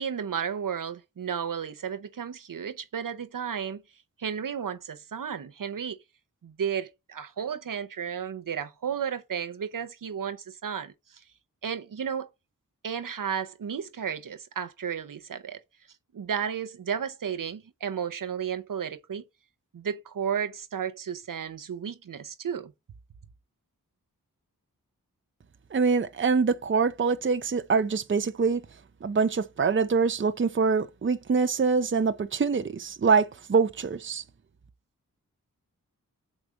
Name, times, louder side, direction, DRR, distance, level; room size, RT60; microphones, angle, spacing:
voice 1, 0.0-3.8 4.2-6.0 6.4-10.9 11.6-12.3 12.8-15.6 16.1-19.2 19.7-22.7, right 7 dB, 70° right, 0.8 m, -33 dB
voice 2, 25.7-28.6 29.0-34.2, right 5 dB, 35° right, 0.6 m, -24 dB
6.1 x 4.4 x 5.1 m
wide cardioid pair, 75°, 34 cm